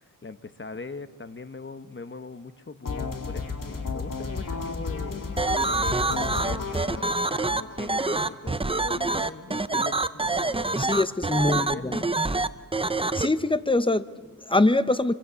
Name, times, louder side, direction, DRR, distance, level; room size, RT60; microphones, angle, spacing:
voice 1, 0.2-7.1 7.4-10.8 11.3-12.4, left 3 dB, 35° left, 11 dB, 1.2 m, -41 dB
sound 1, 2.8-8.8, left 4 dB, 70° left, 3.0 m, -34 dB
sound 2, 5.4-13.3, right 2 dB, 15° right, 0.8 m, -26 dB
voice 2, 10.8-12.0 13.1-15.1, left 2 dB, 15° left, 13 dB, 0.9 m, -24 dB
26.5 x 24.0 x 7.0 m, 1.4 s
wide cardioid pair, 95°, 33 cm